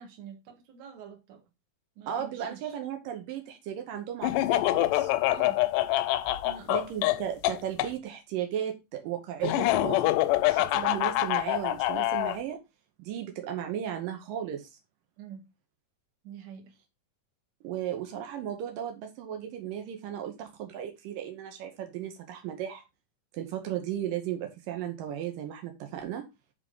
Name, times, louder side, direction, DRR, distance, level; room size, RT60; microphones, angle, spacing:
voice 1, 0.0-1.4 2.0-2.7 5.3-5.6 6.4-6.9 15.2-15.4 16.2-16.7, right 7 dB, 60° right, 2.7 m, -46 dB
voice 2, 2.1-5.1 6.7-10.1 10.5-12.6 13.0-14.7 17.6-22.8 23.3-26.2, right 10 dB, 85° right, 2.7 m, -35 dB
Laughter, 4.2-7.9 9.4-12.4, left 15 dB, 80° left, 2.1 m, -25 dB
11.0 x 3.7 x 3.8 m
omnidirectional pair, 3.9 m